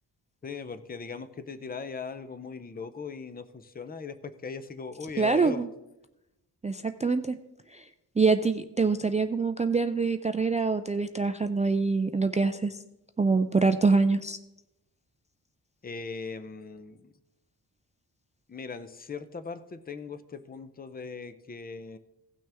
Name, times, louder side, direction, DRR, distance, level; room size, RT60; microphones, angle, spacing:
voice 1, 0.4-5.7 15.8-17.1 18.5-22.0, left 5 dB, 20° left, 11 dB, 0.6 m, -39 dB
voice 2, 5.2-5.7 6.6-7.4 7.7-7.8 8.2-12.8 13.2-14.4, right 4 dB, 20° right, 9 dB, 0.3 m, -25 dB
17.0 x 6.2 x 3.4 m, 0.92 s
wide cardioid pair, 110°, 41 cm